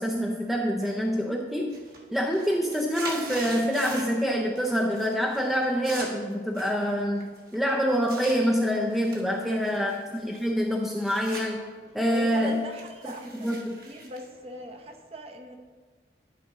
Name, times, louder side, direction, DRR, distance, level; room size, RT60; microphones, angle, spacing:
voice 1, 0.0-1.7 2.1-9.9 10.2-11.6 11.9-12.6 13.3-13.8, equal, ahead, -1 dB, 0.5 m, -26 dB
sound 1, 0.8-1.2 1.5-4.3 4.6-5.1 5.3-8.4 8.9-11.5 11.8-15.0, right 3 dB, 55° right, 1.5 m, -42 dB
voice 2, 9.4-10.1 12.1-15.5, equal, 35° right, 3 dB, 0.8 m, -41 dB
12.0 x 5.2 x 3.6 m, 1.5 s
head